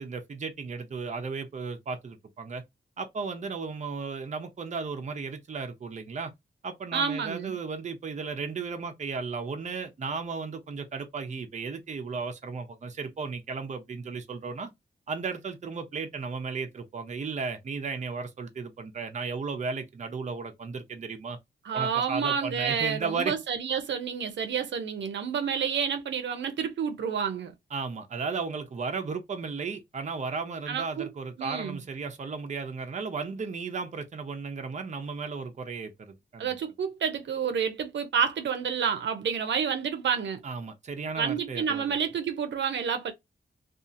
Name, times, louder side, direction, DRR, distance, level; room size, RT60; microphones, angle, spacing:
voice 1, 0.0-2.6 3.0-6.3 6.6-14.7 15.1-21.4 21.7-23.3 27.7-36.5 40.4-41.8, right 4 dB, 40° right, 0.6 m, -35 dB
voice 2, 6.9-7.6 21.6-27.5 30.7-31.1 31.4-31.8 36.4-40.4 41.2-43.1, right 7 dB, 85° right, 0.6 m, -29 dB
2.7 x 2.4 x 2.5 m
wide cardioid pair, 120°, 18 cm